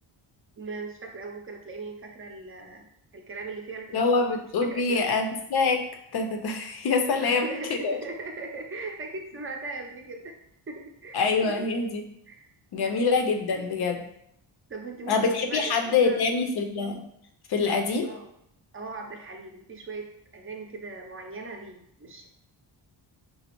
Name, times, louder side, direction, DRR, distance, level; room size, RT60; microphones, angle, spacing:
voice 1, 0.6-2.9 3.1-4.4 4.6-5.0 7.2-10.3 10.7-11.7 12.3-13.0 13.5-13.6 14.7-16.3 18.0-18.3 18.7-22.3, right 3 dB, 25° right, 2 dB, 0.6 m, -39 dB
voice 2, 3.9-5.8 6.1-8.0 11.1-12.0 12.7-14.0 15.1-17.0 17.5-18.1, left 4 dB, 50° left, 4 dB, 0.6 m, -25 dB
4.2 x 2.0 x 2.9 m, 0.74 s
cardioid pair, 90°, 50 cm